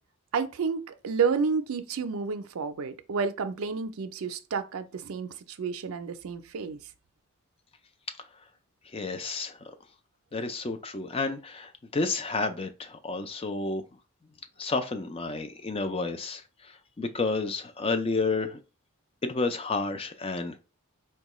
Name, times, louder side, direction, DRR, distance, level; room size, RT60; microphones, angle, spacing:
voice 1, 0.3-6.8, right 5 dB, 70° right, 0.4 m, -30 dB
voice 2, 8.9-9.6 10.3-13.8 14.6-18.6 19.2-20.6, left 3 dB, 25° left, 0.4 m, -31 dB
4.5 x 2.2 x 3.0 m
head